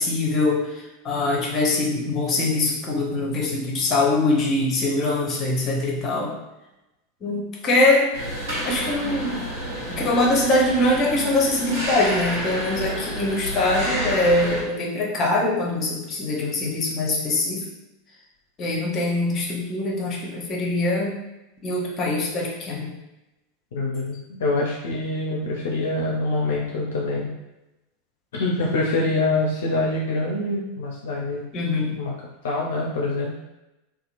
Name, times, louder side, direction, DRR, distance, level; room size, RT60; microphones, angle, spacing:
voice 1, 0.0-6.3 7.2-8.1 8.6-9.4 9.9-17.6 18.6-21.1 21.6-22.9 31.5-32.0, left 2 dB, 35° left, -2 dB, 0.7 m, -23 dB
sound 1, 8.1-14.6, equal, 65° right, 1.2 m, -30 dB
voice 2, 23.7-27.3 28.3-31.4 32.0-32.1 32.4-33.3, left 2 dB, 65° left, -3 dB, 0.5 m, -25 dB
2.8 x 2.2 x 2.5 m, 0.95 s
figure-of-eight pair, 85°, 0 cm